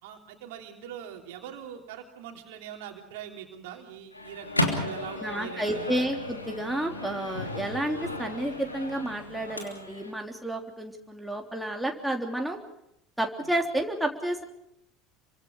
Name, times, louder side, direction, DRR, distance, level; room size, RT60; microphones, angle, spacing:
voice 1, 0.0-6.1, right 9 dB, 65° right, 3 dB, 3.4 m, -42 dB
Microwave oven, 4.1-10.1, left 1 dB, 90° left, 3.0 m, -34 dB
voice 2, 5.2-12.6 13.2-14.4, right 1 dB, 5° right, 2 dB, 3.4 m, -31 dB
29.5 x 24.5 x 4.8 m, 0.77 s
figure-of-eight pair, 70°, 0 cm